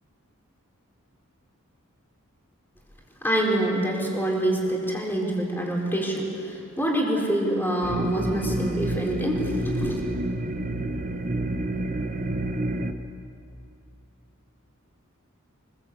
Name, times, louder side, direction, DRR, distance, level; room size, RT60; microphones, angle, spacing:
voice 1, 3.2-10.0, right 1 dB, 10° left, -2 dB, 4.2 m, -26 dB
sound 1, 7.8-12.9, right 1 dB, 40° right, 1.1 m, -29 dB
24.5 x 21.5 x 8.4 m, 2.6 s
head